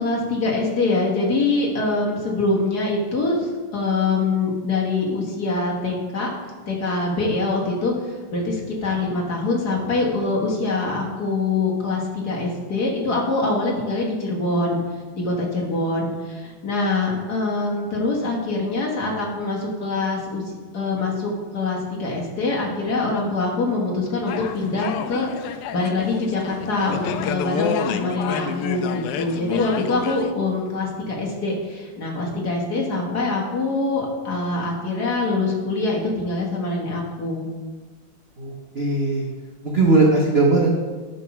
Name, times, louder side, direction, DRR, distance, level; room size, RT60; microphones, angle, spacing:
voice 1, 0.0-6.3 6.7-14.8 15.1-20.4 20.7-25.3 25.7-37.5, left 3 dB, 50° left, -2 dB, 1.9 m, -24 dB
sound 1, 24.3-30.3, left 8 dB, 85° left, 1.5 m, -29 dB
voice 2, 38.4-39.3 39.6-40.7, right 3 dB, 45° right, -2 dB, 0.8 m, -18 dB
12.0 x 4.3 x 5.9 m, 1.4 s
omnidirectional pair, 2.4 m